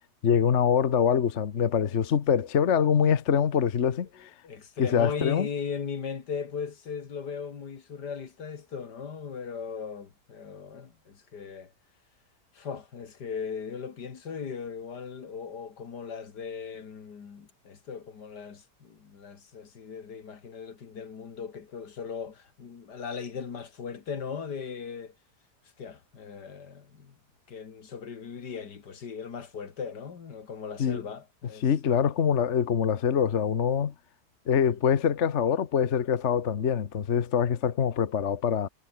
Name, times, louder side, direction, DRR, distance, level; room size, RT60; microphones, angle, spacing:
voice 1, 0.2-4.3 4.8-5.5 30.8-31.0 31.6-33.9 34.5-38.7, left 7 dB, 50° left, 1.3 m, -24 dB
voice 2, 4.1-11.7 12.5-25.2 25.8-27.1 27.5-31.7, left 6 dB, 80° left, 2.5 m, -38 dB
omnidirectional pair, 1.8 m